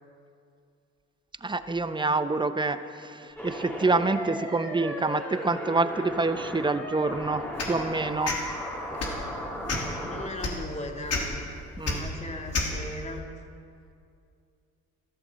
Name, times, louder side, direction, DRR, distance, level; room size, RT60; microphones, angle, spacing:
voice 1, 1.4-8.4 11.8-12.0, right 3 dB, 15° right, 11 dB, 0.8 m, -27 dB
sound 1, 3.4-10.3, equal, 5° left, 3.5 m, -36 dB
sound 2, 7.6-7.8 8.2-8.4 8.9-9.2 9.7-9.9 10.4-10.5 11.1-11.2 11.8-11.9 12.5-12.7, left 4 dB, 55° left, 3.3 m, -28 dB
voice 2, 10.1-11.4 11.9-13.3, left 1 dB, 20° left, 2 dB, 2.3 m, -37 dB
14.5 x 13.0 x 7.6 m, 2.4 s
cardioid pair, 90°, 30 cm